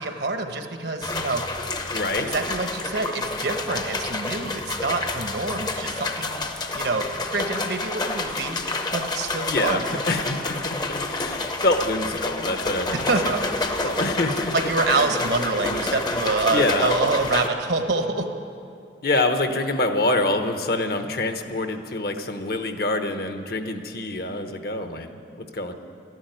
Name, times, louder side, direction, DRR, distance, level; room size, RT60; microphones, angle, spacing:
voice 1, 0.0-1.6 2.2-6.5 6.7-8.6 8.9-9.8 12.9-13.9 14.5-18.3, right 3 dB, 65° right, 6 dB, 1.2 m, -26 dB
sound 1, 1.0-17.5, left 2 dB, 25° left, 0.7 m, -29 dB
voice 2, 1.9-2.3 9.5-9.8 10.1-13.0 13.8-14.5 14.9-15.1 16.5-16.9 19.0-25.7, left 2 dB, 55° left, 7 dB, 1.0 m, -26 dB
12.5 x 11.0 x 9.3 m, 2.5 s
head